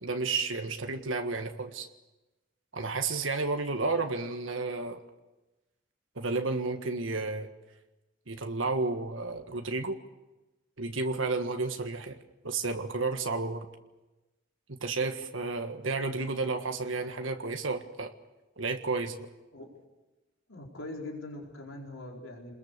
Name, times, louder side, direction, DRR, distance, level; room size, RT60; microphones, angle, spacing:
voice 1, 0.0-1.9 2.7-5.0 6.2-7.5 8.3-10.0 10.8-12.2 12.4-13.7 14.7-18.1 18.6-19.3, right 3 dB, 80° right, 5 dB, 1.6 m, -32 dB
voice 2, 20.5-22.5, left 2 dB, 90° left, -1 dB, 4.5 m, -42 dB
29.0 x 21.0 x 6.8 m, 1.1 s
head